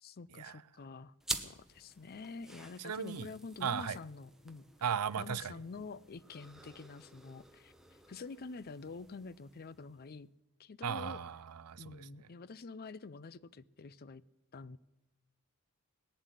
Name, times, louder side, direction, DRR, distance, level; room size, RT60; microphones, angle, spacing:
voice 1, 0.0-4.6 5.2-7.7 8.1-10.3 10.6-11.2 11.8-14.2 14.5-14.8, left 4 dB, 45° left, 0.5 m, -47 dB
sound 1, 1.2-10.2, right 1 dB, ahead, 0.9 m, -48 dB
voice 2, 2.8-3.3 3.6-4.0 4.8-5.4 10.8-12.0, right 7 dB, 85° right, 0.6 m, -36 dB
19.0 x 7.5 x 9.8 m
head